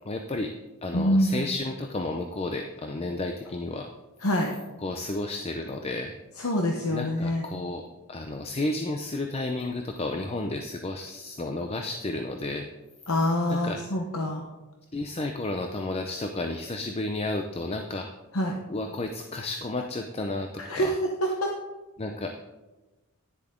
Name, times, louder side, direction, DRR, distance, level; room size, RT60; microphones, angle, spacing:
voice 1, 0.0-0.5 0.8-3.9 4.8-6.1 6.9-12.7 13.5-13.8 14.9-18.1 18.7-21.0 22.0-22.4, left 2 dB, 25° left, 5 dB, 0.5 m, -32 dB
voice 2, 0.9-1.4 4.2-4.5 6.4-7.4 13.1-14.4 18.3-18.6 20.6-20.9 21.2-21.5, equal, 75° left, 1 dB, 1.0 m, -25 dB
10.5 x 10.0 x 3.7 m, 1.1 s
head